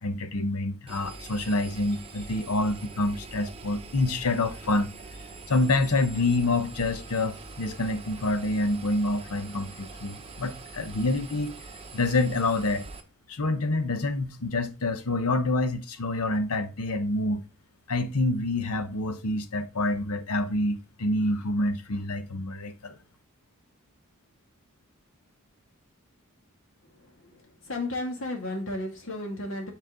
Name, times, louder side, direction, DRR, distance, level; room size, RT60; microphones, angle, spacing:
voice 1, 0.0-4.9 5.5-11.5 11.9-12.8 13.3-17.4 17.9-22.9, left 2 dB, 80° left, 1.0 m, -27 dB
Engine, 0.9-13.0, right 3 dB, 25° right, 0.8 m, -44 dB
voice 2, 26.9-29.7, left 1 dB, 60° left, 2.1 m, -34 dB
7.8 x 4.4 x 3.7 m
head